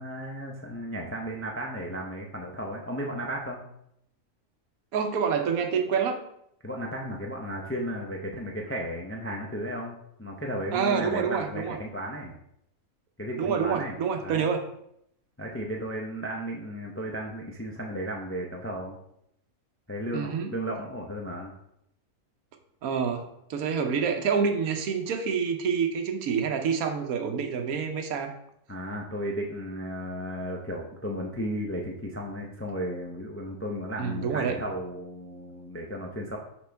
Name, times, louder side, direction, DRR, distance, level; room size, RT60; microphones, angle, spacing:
voice 1, 0.0-3.6 6.6-12.4 13.2-14.0 14.2-14.5 15.4-19.0 19.9-21.5 28.7-36.4, equal, 20° left, 0 dB, 0.4 m, -34 dB
voice 2, 4.9-6.2 10.7-11.8 13.4-14.6 20.1-20.5 22.8-28.3 34.0-34.6, right 6 dB, 75° right, 6 dB, 1.2 m, -27 dB
6.0 x 5.2 x 3.4 m, 0.74 s
omnidirectional pair, 1.6 m